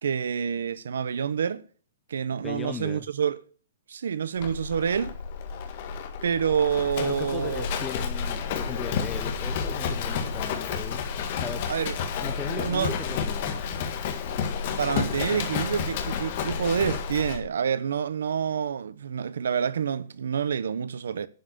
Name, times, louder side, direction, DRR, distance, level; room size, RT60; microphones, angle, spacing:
voice 1, 0.0-1.6 2.1-3.4 3.9-5.1 6.2-7.7 11.7-12.0 12.5-12.9 14.8-21.3, right 7 dB, 80° right, 0.7 m, -27 dB
voice 2, 2.3-3.1 7.0-11.0 11.4-11.7 12.2-13.6, left 6 dB, 10° left, 0.5 m, -38 dB
Livestock farm animals working animals, 4.4-17.4, left 6 dB, 35° left, 1.8 m, -30 dB
11.5 x 5.7 x 6.7 m
hypercardioid pair, 175°, 0 cm